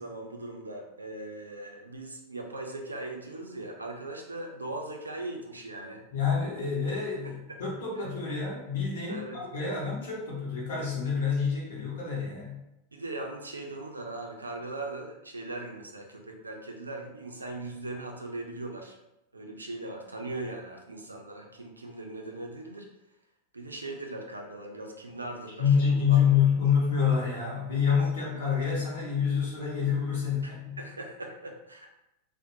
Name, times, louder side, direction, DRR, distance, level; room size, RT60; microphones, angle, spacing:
voice 1, 0.0-6.0 7.2-7.6 9.1-9.5 12.9-19.0 19.3-22.9 23.5-26.2 30.4-32.0, right 2 dB, 80° right, 2 dB, 0.4 m, -39 dB
voice 2, 6.1-12.6 25.6-30.8, left 7 dB, 60° left, -4 dB, 0.9 m, -27 dB
2.5 x 2.1 x 2.6 m, 0.89 s
figure-of-eight pair, 90°, 0 cm